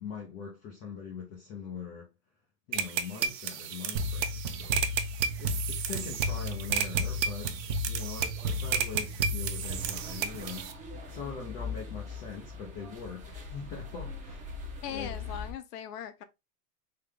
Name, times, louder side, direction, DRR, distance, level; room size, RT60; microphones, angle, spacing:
voice 1, 0.0-2.1 2.7-4.8 5.4-15.2, left 5 dB, 20° left, 0.3 m, -42 dB
sound 1, 2.7-10.7, right 8 dB, 90° right, 0.9 m, -33 dB
sound 2, 3.9-10.6, left 1 dB, 50° right, 0.8 m, -34 dB
sound 3, 9.6-15.5, left 4 dB, 15° right, 0.7 m, -41 dB
voice 2, 14.8-16.2, left 9 dB, 75° left, 0.9 m, -39 dB
3.7 x 3.3 x 3.2 m
supercardioid pair, 140°, 48 cm